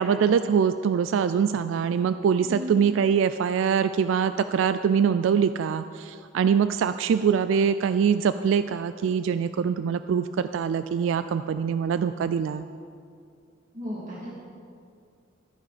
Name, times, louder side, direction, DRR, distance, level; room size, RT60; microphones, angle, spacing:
voice 1, 0.0-12.6, right 7 dB, 80° right, 12 dB, 0.3 m, -23 dB
voice 2, 13.7-14.4, equal, 40° right, -7 dB, 2.5 m, -35 dB
13.5 x 10.0 x 4.2 m, 2.4 s
head